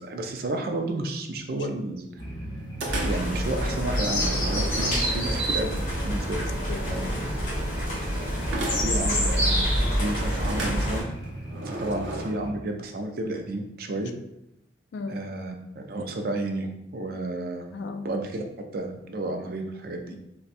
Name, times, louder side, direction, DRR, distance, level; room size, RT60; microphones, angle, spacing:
voice 1, 0.0-2.2 2.9-6.4 8.8-11.0 11.6-14.1 15.1-17.7 18.0-18.4 18.7-20.2, right 2 dB, 50° right, 4 dB, 0.4 m, -32 dB
sound 1, 2.2-12.5, right 1 dB, 20° left, 0.5 m, -38 dB
sound 2, 2.8-3.4 4.0-5.4 8.5-9.1 10.4-12.3, right 2 dB, 85° right, 0.6 m, -34 dB
sound 3, 2.9-11.0, equal, 45° left, 1.4 m, -27 dB
voice 2, 5.2-5.6 6.4-7.2 14.9-15.2 17.7-18.1 20.1-20.2, left 3 dB, 70° left, 7 dB, 0.3 m, -37 dB
4.0 x 2.2 x 2.5 m, 0.83 s
head